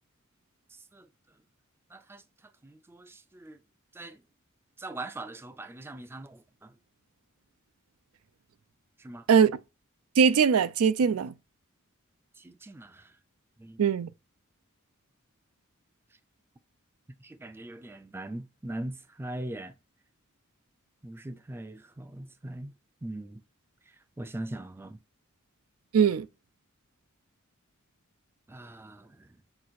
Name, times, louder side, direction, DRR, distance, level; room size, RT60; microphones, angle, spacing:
voice 1, 1.9-2.2 2.6-3.6 3.9-4.2 4.8-6.7 9.0-9.3 12.4-13.1 13.6-13.9 17.2-19.8 21.0-22.7 23.0-23.4 24.2-25.0 28.5-29.3, right 1 dB, 10° right, 0.3 m, -41 dB
voice 2, 9.3-9.6 10.2-11.3 13.8-14.1 25.9-26.3, right 6 dB, 90° right, 0.4 m, -21 dB
5.9 x 2.4 x 2.6 m
head